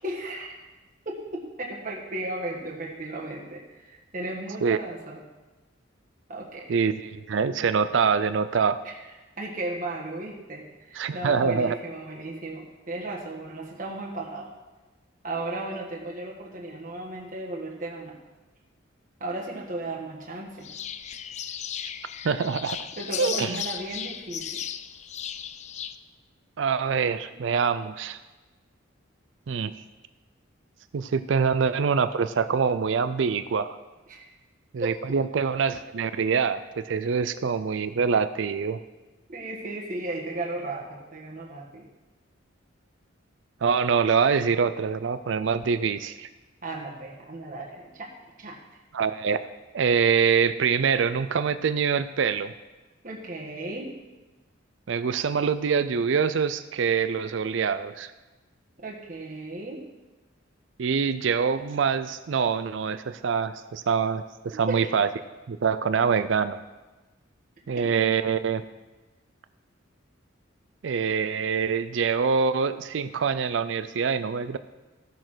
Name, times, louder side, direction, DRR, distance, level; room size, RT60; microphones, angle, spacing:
voice 1, 0.0-0.5 1.0-5.2 6.3-6.7 8.8-8.9 9.4-14.5 15.2-18.2 19.2-20.7 23.0-24.6 27.4-27.5 34.1-34.3 34.8-35.0 39.3-41.9 46.6-48.6 53.0-53.9 58.8-59.8 64.5-64.9, right 2 dB, 40° right, -2 dB, 1.4 m, -35 dB
voice 2, 6.7-8.8 11.0-11.7 22.2-22.9 23.2-23.6 26.6-28.2 29.5-29.7 30.9-33.8 34.7-38.8 43.6-46.3 48.9-49.4 49.7-52.5 54.9-58.1 60.8-65.1 65.5-66.6 67.7-68.6 70.8-74.6, right 6 dB, 70° right, 12 dB, 0.4 m, -25 dB
sound 1, 20.6-26.0, left 9 dB, 35° left, 0.4 m, -35 dB
14.5 x 6.5 x 6.2 m, 1.2 s
head